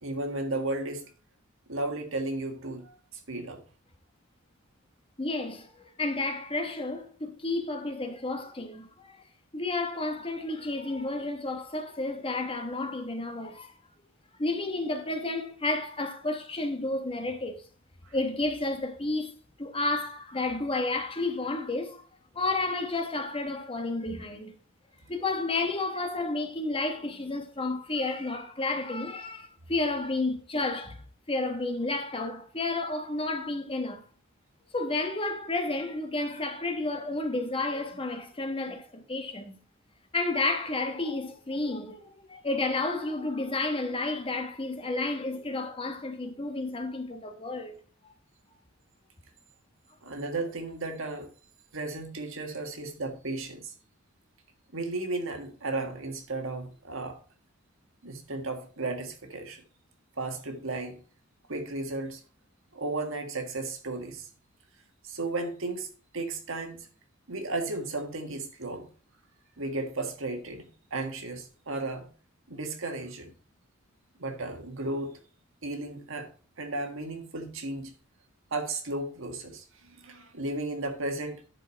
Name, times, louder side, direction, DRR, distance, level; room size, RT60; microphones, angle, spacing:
voice 1, 0.0-1.0 1.7-3.6 18.0-18.2 24.1-24.3 50.0-51.3 51.7-53.7 54.7-57.2 58.0-59.6 60.2-61.0 61.5-62.2 62.7-64.3 65.0-65.9 66.1-66.9 67.3-68.9 69.6-72.1 72.5-73.3 74.2-75.2 75.6-76.3 76.6-77.9 78.5-81.4, right 2 dB, 70° right, 1.7 m, -34 dB
voice 2, 5.2-9.2 9.5-13.7 14.4-17.6 18.1-22.0 22.3-24.5 25.1-31.0 31.3-34.0 34.7-39.6 40.1-47.7, left 2 dB, 25° left, 1.2 m, -31 dB
11.0 x 4.8 x 4.5 m
head